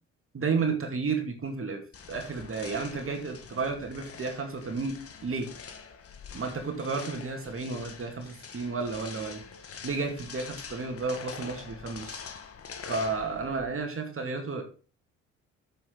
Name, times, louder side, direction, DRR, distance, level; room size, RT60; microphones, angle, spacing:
voice 1, 0.3-1.8 2.1-5.5 6.3-9.4 9.8-12.2 12.9-14.6, right 4 dB, 40° right, 4 dB, 2.3 m, -32 dB
sound 1, 1.9-13.8, left 6 dB, 40° left, 1.5 m, -44 dB
8.0 x 7.0 x 3.9 m, 0.36 s
hypercardioid pair, 55°, 34 cm